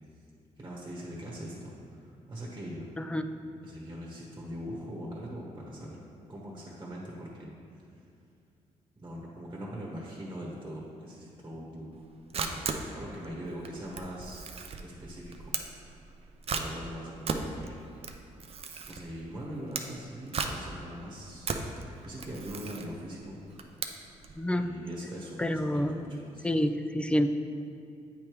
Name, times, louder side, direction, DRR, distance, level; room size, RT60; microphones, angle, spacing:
voice 1, 0.6-2.9 3.6-6.0 6.3-8.0 9.0-12.0 12.3-12.6 12.9-15.8 16.5-17.8 18.9-21.6 22.0-23.7 24.5-26.5, equal, 25° right, -4 dB, 1.2 m, -42 dB
voice 2, 3.0-3.3 24.4-24.7 25.4-26.0 26.4-27.3, left 1 dB, 10° left, 9 dB, 0.3 m, -28 dB
Camera, 12.0-24.4, right 5 dB, 50° right, 0.5 m, -37 dB
8.4 x 3.3 x 4.6 m, 2.5 s
cardioid pair, 80°, 13 cm